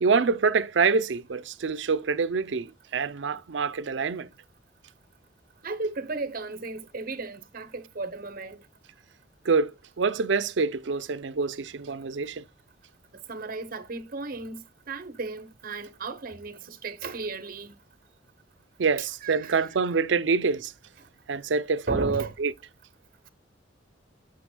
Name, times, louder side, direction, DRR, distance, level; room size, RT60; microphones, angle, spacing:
voice 1, 0.0-4.3 9.5-12.4 18.8-20.7 21.3-22.5, right 5 dB, 70° right, 0.5 m, -26 dB
voice 2, 5.6-8.6 13.3-17.7 19.2-19.7 21.9-22.3, right 3 dB, 50° right, 0.9 m, -35 dB
8.5 x 6.2 x 2.2 m
head